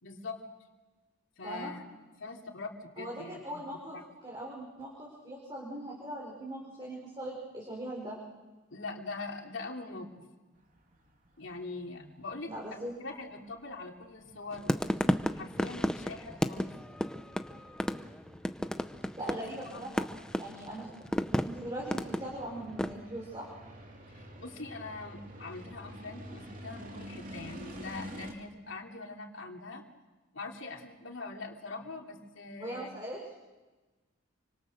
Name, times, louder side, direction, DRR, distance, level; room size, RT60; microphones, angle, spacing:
voice 1, 0.0-0.4 1.4-1.8 2.2-3.6 3.9-4.0 8.7-10.2 11.4-12.6 13.0-14.7 15.4-16.7 19.4-19.8 24.1-29.8 30.3-32.9, left 3 dB, 70° left, 2 dB, 3.1 m, -42 dB
voice 2, 3.0-4.0 4.2-8.2 12.4-12.9 19.2-19.9 20.4-20.9 21.4-23.5 32.6-33.2, right 1 dB, 25° right, -4 dB, 4.9 m, -40 dB
sound 1, 10.5-28.3, equal, 40° right, 3.3 m, -50 dB
sound 2, 14.5-22.9, equal, 5° left, 0.8 m, -32 dB
29.0 x 25.5 x 6.7 m, 1.2 s
head